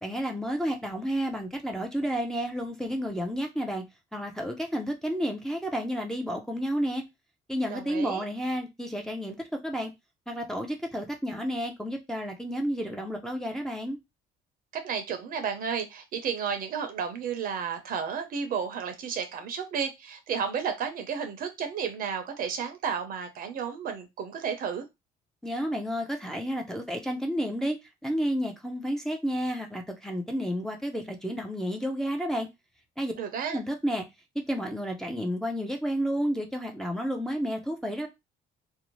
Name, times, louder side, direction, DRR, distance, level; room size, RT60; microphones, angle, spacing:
voice 1, 0.0-3.8 4.1-7.0 7.5-9.4 9.6-9.9 10.3-14.0 25.4-32.5 33.0-33.1 33.5-34.0 34.3-38.1, equal, 5° left, 0.5 m, -31 dB
voice 2, 7.7-8.2 14.7-24.9 33.2-33.6, right 7 dB, 55° right, 0.7 m, -32 dB
2.6 x 2.0 x 3.0 m
cardioid pair, 110°, 17 cm